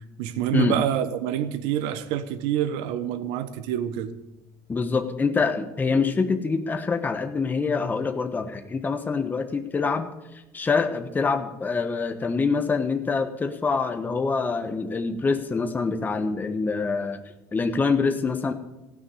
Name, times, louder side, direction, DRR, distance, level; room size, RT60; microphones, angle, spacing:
voice 1, 0.2-4.1, right 10 dB, 80° right, 11 dB, 1.1 m, -27 dB
voice 2, 4.7-17.2 17.5-18.5, left 4 dB, 20° left, 5 dB, 1.2 m, -25 dB
15.5 x 6.3 x 9.7 m, 1.0 s
supercardioid pair, 105°, 8 cm